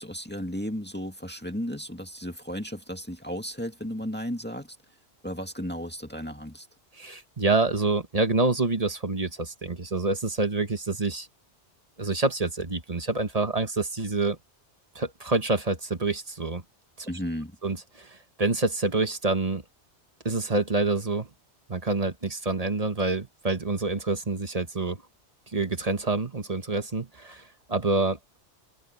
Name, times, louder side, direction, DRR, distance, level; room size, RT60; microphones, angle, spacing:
voice 1, 0.0-4.8 5.2-6.7 17.0-17.6, equal, 10° left, 2.1 m, -34 dB
voice 2, 7.0-11.3 12.0-14.4 14.9-16.6 17.0-17.1 17.6-19.6 20.2-21.3 21.7-25.0 25.5-27.4 27.7-28.2, right 3 dB, 35° right, 1.4 m, -27 dB
open air
omnidirectional pair, 1.2 m